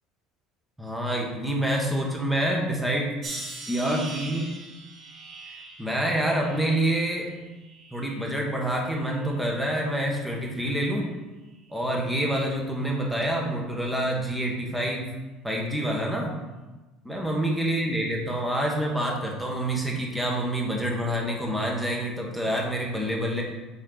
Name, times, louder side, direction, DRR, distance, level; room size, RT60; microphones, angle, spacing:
voice 1, 0.8-3.1 3.7-4.5 5.8-7.3 7.9-11.1 11.7-15.1 15.4-16.3 17.0-23.4, right 1 dB, 5° right, -1 dB, 1.1 m, -27 dB
sound 1, 3.2-8.4 8.8-9.5 10.2-10.5, right 2 dB, 40° right, 2.0 m, -42 dB
9.1 x 4.2 x 3.8 m, 1.1 s
cardioid pair, 175°, 0 cm